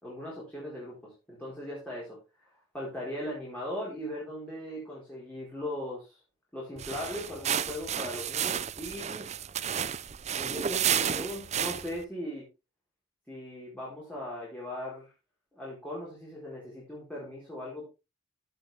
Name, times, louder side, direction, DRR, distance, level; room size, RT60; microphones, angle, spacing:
voice 1, 0.0-6.2 6.5-9.3 10.4-12.5 13.3-15.1 15.5-17.9, left 1 dB, 5° left, -6 dB, 4.7 m, -39 dB
sound 1, 6.8-12.0, right 9 dB, 35° right, 0.5 m, -31 dB
15.5 x 7.0 x 3.6 m, 0.29 s
head